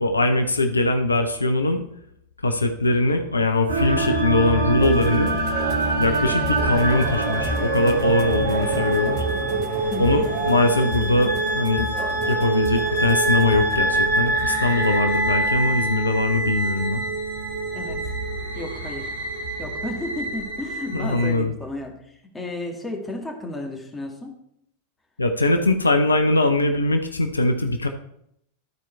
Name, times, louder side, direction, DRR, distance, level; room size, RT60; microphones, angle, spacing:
voice 1, 0.0-1.8 2.4-5.3 6.0-9.2 10.0-17.0 20.9-21.5 25.2-27.9, left 2 dB, 80° left, 6 dB, 0.6 m, -21 dB
sound 1, 3.7-21.3, right 2 dB, 70° right, 1.6 m, -25 dB
sound 2, 4.8-16.2, right 5 dB, 40° right, 0.9 m, -33 dB
voice 2, 9.9-10.3 17.7-18.0 18.6-19.1 19.6-24.3, left 2 dB, 10° left, 0 dB, 1.8 m, -33 dB
12.0 x 4.5 x 4.4 m, 0.74 s
figure-of-eight pair, 90°, 0 cm